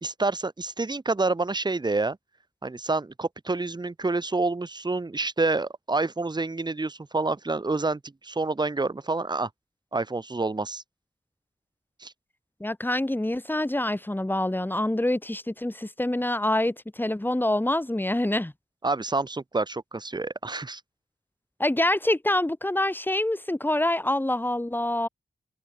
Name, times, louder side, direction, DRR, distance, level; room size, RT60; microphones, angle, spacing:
voice 1, 0.0-2.2 2.6-9.5 9.9-10.8 12.0-12.1 18.8-20.8, right 3 dB, 25° right, 0.8 m, -28 dB
voice 2, 12.6-18.5 21.6-25.1, left 1 dB, 10° left, 1.3 m, -26 dB
open air
wide cardioid pair, 95°, 19 cm